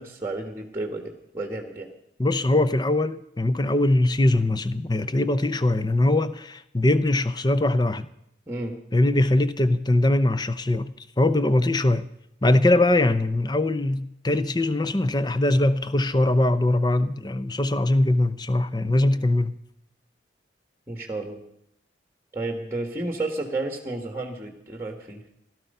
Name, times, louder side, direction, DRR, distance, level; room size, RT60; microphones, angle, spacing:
voice 1, 0.0-1.9 8.5-8.7 19.0-19.1 20.9-21.4 22.3-25.2, right 2 dB, 15° right, 1.6 m, -32 dB
voice 2, 2.2-8.1 8.9-12.1 12.4-19.5, left 1 dB, 20° left, 0.7 m, -22 dB
17.0 x 12.5 x 5.5 m
head